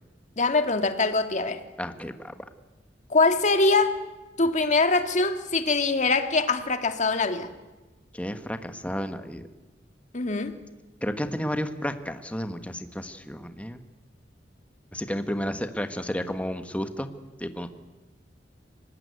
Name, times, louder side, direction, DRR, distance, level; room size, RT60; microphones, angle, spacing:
voice 1, 0.4-1.6 3.1-3.9 4.4-7.5 10.1-10.6, left 3 dB, 40° left, 8 dB, 1.8 m, -23 dB
voice 2, 1.8-2.3 8.1-9.5 11.0-13.8 14.9-17.1 17.4-17.7, equal, 10° left, 8 dB, 1.4 m, -32 dB
24.5 x 20.0 x 9.6 m, 1.2 s
head